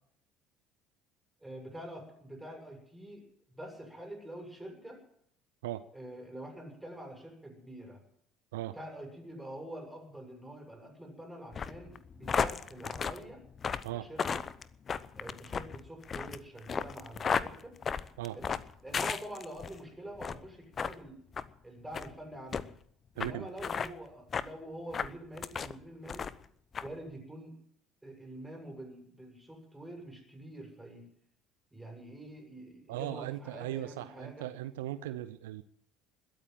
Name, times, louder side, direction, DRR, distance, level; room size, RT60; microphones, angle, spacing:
voice 1, 1.4-5.0 5.9-8.0 8.7-13.4 13.9-14.4 15.1-17.7 18.3-18.5 18.8-21.2 21.6-22.7 23.1-26.3 26.8-27.5 28.0-31.0 31.7-34.5, right 1 dB, 10° right, 2 dB, 6.9 m, -46 dB
sound 1, 11.5-19.8 20.1-20.4 20.8-20.9 21.3-21.5 21.9-22.1 22.5-22.6 23.2-23.3 23.6-23.9 24.3-24.5 24.9-25.7 26.1-26.4 26.7-26.9, left 6 dB, 35° left, 0.8 m, -34 dB
voice 2, 32.9-35.6, right 14 dB, 70° right, 13 dB, 0.6 m, -38 dB
21.0 x 8.9 x 7.6 m, 0.67 s
figure-of-eight pair, 60°, 0 cm